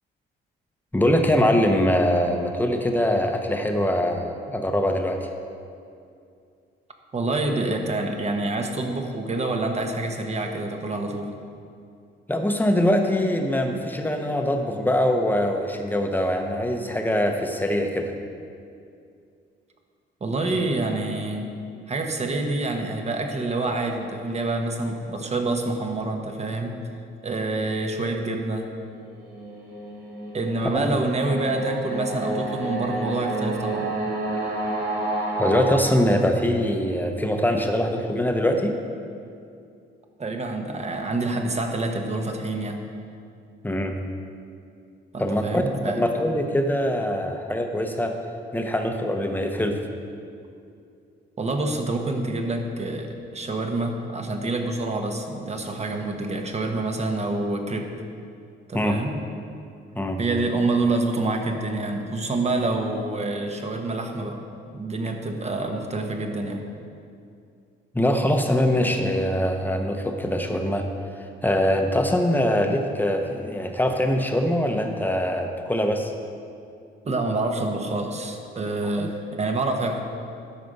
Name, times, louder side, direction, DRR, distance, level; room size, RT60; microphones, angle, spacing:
voice 1, 0.9-5.3 12.3-18.1 30.7-30.8 35.3-38.7 43.6-44.0 45.2-45.7 46.0-48.2 48.5-49.9 58.7-59.0 59.9-60.2 67.9-70.9 71.4-76.1 79.0-79.1, left 1 dB, 10° left, 4 dB, 0.9 m, -23 dB
voice 2, 7.1-11.3 20.2-21.5 21.9-26.7 27.2-28.7 30.3-33.9 40.2-42.8 45.1-46.0 51.4-57.9 58.7-59.2 60.2-64.4 64.7-66.7 77.0-80.0, right 2 dB, 35° right, 3 dB, 1.2 m, -27 dB
sound 1, 29.1-35.8, right 2 dB, 55° right, 2.4 m, -29 dB
12.5 x 5.0 x 5.4 m, 2.4 s
cardioid pair, 90°, 20 cm